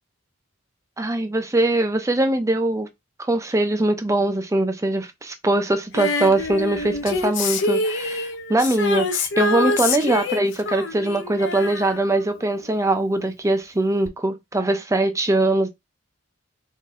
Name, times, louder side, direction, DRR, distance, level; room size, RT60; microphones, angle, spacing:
voice 1, 1.0-2.9 3.2-15.7, right 2 dB, 15° right, 0.5 m, -22 dB
Female singing, 5.9-12.9 14.1-14.2, left 3 dB, 60° left, 0.6 m, -26 dB
4.1 x 2.7 x 3.6 m
head